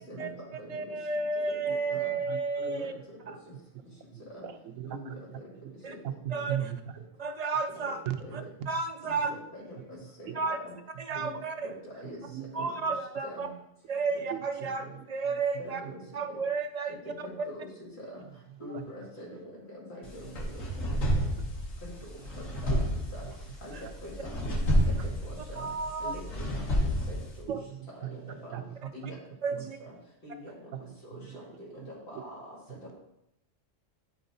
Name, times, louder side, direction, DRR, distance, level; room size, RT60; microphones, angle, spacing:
voice 1, 0.0-1.0 1.4-1.6 1.9-2.1 2.6-3.2 4.3-4.5 4.9-5.4 5.9-6.0 7.8-7.9 8.2-8.4 9.0-10.7 11.1-11.3 11.6-12.2 12.6-12.7 13.2-13.5 14.1-14.2 14.8-14.9 15.6-16.0 16.3-16.4 16.9-18.2 18.6-20.6 21.8-21.9 22.6-23.3 23.6-24.1 25.0-25.7 26.0-26.6 27.1-27.6 27.9-28.6 28.9-29.2 29.5-30.0 30.2-30.5 31.0-33.0, equal, 55° left, -5 dB, 2.8 m, -44 dB
voice 2, 0.7-2.9 5.8-5.9 6.3-6.7 7.2-8.0 8.3-8.4 8.7-9.3 10.4-10.6 11.0-11.7 12.5-13.5 13.9-14.8 15.1-15.8 16.1-17.0 18.6-18.7 25.6-26.2 27.5-27.6 29.4-29.8, right 4 dB, 60° right, 6 dB, 0.4 m, -32 dB
voice 3, 1.7-2.4 4.1-5.4 6.0-7.0 8.1-8.7 10.3-10.4 11.0-11.3 12.3-12.7 14.3-14.7 15.3-15.4 18.7-18.8 22.7-22.8 24.7-25.1 25.5-25.6 27.5-28.6 29.0-29.2 29.5-29.7 30.7-30.8 31.1-31.4, right 11 dB, 80° right, 9 dB, 1.0 m, -39 dB
sound 1, 20.0-27.4, equal, 85° left, 1.8 m, -30 dB
10.5 x 3.9 x 3.9 m, 0.79 s
omnidirectional pair, 1.3 m